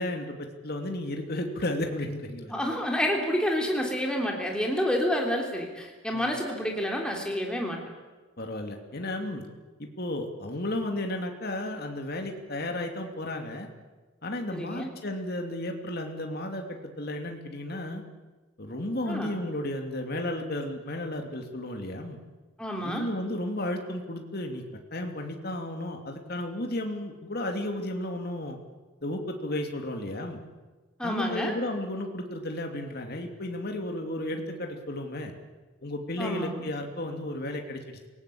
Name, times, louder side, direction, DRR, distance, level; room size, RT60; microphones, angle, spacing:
voice 1, 0.0-2.5 6.1-6.3 8.4-9.4 9.8-13.7 14.2-18.0 18.6-22.2 22.8-24.6 24.9-28.6 29.0-30.4 31.0-35.3 35.8-38.1, left 1 dB, 50° left, 3 dB, 2.8 m, -33 dB
voice 2, 2.5-7.8 14.5-14.9 19.1-19.3 22.6-23.1 31.0-31.6 36.2-36.6, equal, 5° left, 0 dB, 3.4 m, -29 dB
27.5 x 18.5 x 8.7 m, 1.3 s
head